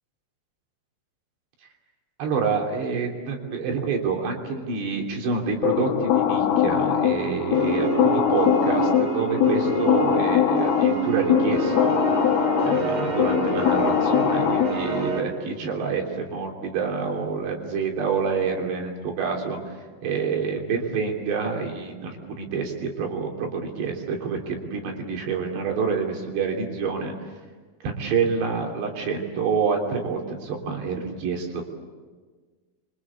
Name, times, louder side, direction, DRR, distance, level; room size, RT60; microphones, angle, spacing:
voice 1, 2.2-12.0 12.6-19.7 20.0-27.1 27.8-31.6, right 5 dB, 65° right, 2 dB, 5.1 m, -27 dB
sound 1, 5.6-15.1, left 10 dB, 65° left, 3.0 m, -22 dB
sound 2, 7.5-15.2, right 5 dB, 85° right, 5.4 m, -28 dB
28.0 x 24.0 x 8.4 m, 1.4 s
omnidirectional pair, 5.5 m